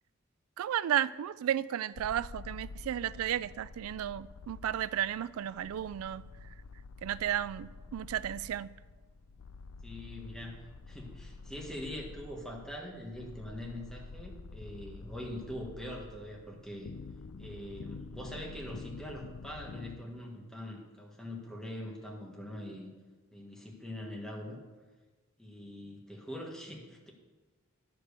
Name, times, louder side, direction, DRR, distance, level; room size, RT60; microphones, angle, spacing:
voice 1, 0.6-6.2 7.0-8.7, right 10 dB, 85° right, 0.3 m, -33 dB
sound 1, 2.0-20.0, left 4 dB, 80° left, 0.4 m, -48 dB
voice 2, 9.8-16.9 17.4-22.9 23.3-24.6 25.4-27.1, left 1 dB, 5° left, 1.5 m, -43 dB
10.5 x 5.2 x 6.6 m
head